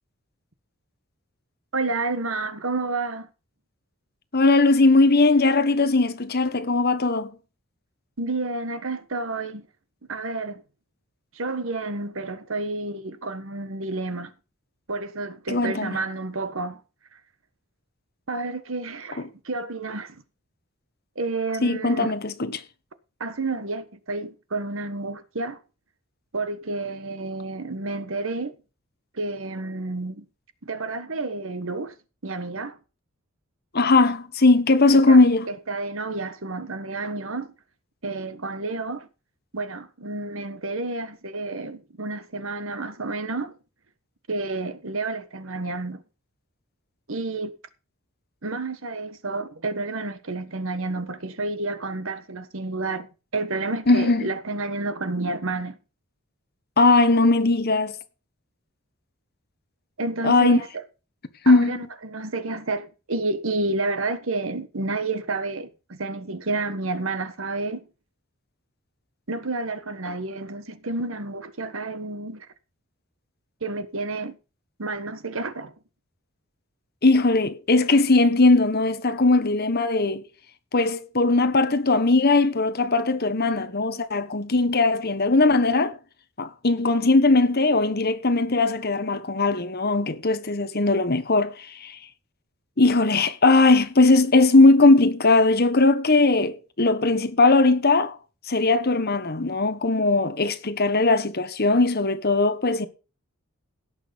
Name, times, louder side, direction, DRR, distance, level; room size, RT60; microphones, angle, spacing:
voice 1, 1.7-3.3 8.2-9.7 10.1-10.6 11.3-14.3 14.9-16.8 18.3-20.2 21.1-22.1 23.2-25.6 26.3-28.5 29.1-30.2 30.6-31.9 32.2-32.8 34.9-35.2 35.5-37.5 38.0-39.1 39.5-43.5 44.3-46.0 47.1-47.5 48.4-53.1 53.3-55.8 60.0-60.7 61.4-61.8 62.0-67.8 69.3-72.5 73.6-74.4 74.8-75.7, right 3 dB, 65° right, 1.4 m, -30 dB
voice 2, 4.3-7.3 15.5-16.0 21.6-22.6 33.7-35.5 53.9-54.2 56.8-58.0 60.2-60.6 61.4-61.8 77.0-80.3 80.7-86.0 86.4-92.0 92.8-98.2 98.4-102.9, left 3 dB, 45° left, 1.4 m, -19 dB
17.0 x 6.5 x 5.2 m
head